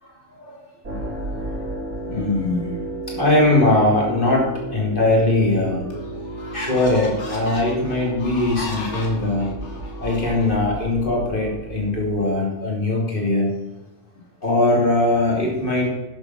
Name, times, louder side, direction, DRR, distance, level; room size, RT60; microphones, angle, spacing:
sound 1, 0.8-12.1, right 1 dB, 80° right, 4.2 m, -33 dB
voice 1, 0.9-2.7 3.1-6.0 6.5-9.5 10.0-13.5 14.4-15.9, left 2 dB, 45° left, -1 dB, 3.4 m, -21 dB
sound 2, 5.2-5.3 5.9-10.9, left 3 dB, 65° left, 2.6 m, -37 dB
11.0 x 7.2 x 6.3 m, 1.0 s
omnidirectional pair, 1.3 m